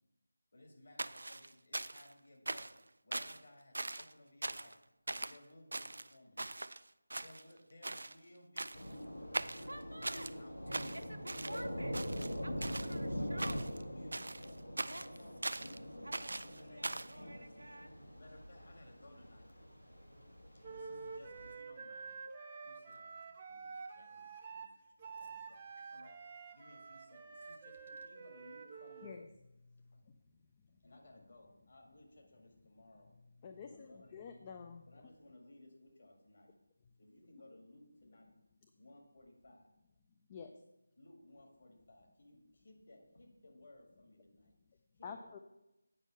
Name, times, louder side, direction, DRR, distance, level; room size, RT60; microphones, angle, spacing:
voice 1, 0.5-2.7 3.0-4.8 5.1-6.4 7.2-9.0 9.5-12.2 13.2-14.7 15.1-15.4 16.5-17.5 18.1-19.6 20.5-22.2 22.6-24.7 25.0-26.2 26.5-29.1 29.9-30.0 30.8-33.1 33.7-34.2 34.9-36.5 37.0-38.3 38.7-39.7 41.0-44.5 44.9-45.4, left 1 dB, 50° left, 1 dB, 1.8 m, -60 dB
sound 1, 1.0-2.1 2.5-2.8 3.1-3.4 3.7-4.1 4.4-4.8 5.1-5.4 5.7-6.8 7.1-7.6 7.8-8.1 8.6-8.9 9.3-10.3 10.7-11.6 11.9-13.0 13.4-13.8 14.1-15.8 16.1-17.1, right 2 dB, 60° right, 0.3 m, -41 dB
Thunder / Rain, 8.7-21.5, equal, 85° left, 2.0 m, -44 dB
voice 2, 9.7-10.4 10.9-12.0 12.4-13.7 14.9-15.1 16.0-18.0, right 1 dB, 80° right, 8 dB, 0.7 m, -51 dB
Wind instrument woodwind instrument, 20.6-29.2, right 5 dB, 20° right, 0.7 m, -49 dB
voice 3, 33.4-34.8 40.3-40.5 45.0-45.4, left 6 dB, 20° left, 7 dB, 0.3 m, -48 dB
8.8 x 5.3 x 5.3 m, 0.94 s
figure-of-eight pair, 160°, 0 cm